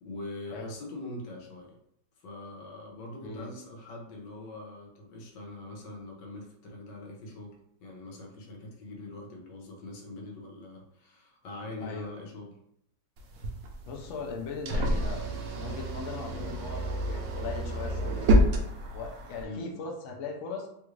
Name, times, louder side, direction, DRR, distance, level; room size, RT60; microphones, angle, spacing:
voice 1, 0.0-1.8 2.2-7.5 7.8-12.5 19.4-19.7, left 2 dB, 85° left, 0 dB, 1.5 m, -43 dB
voice 2, 3.2-3.5 11.8-12.1 13.8-18.6 18.9-20.7, left 4 dB, 65° left, 0 dB, 0.7 m, -39 dB
sound 1, 13.2-19.4, equal, 70° right, 0.9 m, -28 dB
3.4 x 2.4 x 3.1 m, 0.75 s
omnidirectional pair, 1.9 m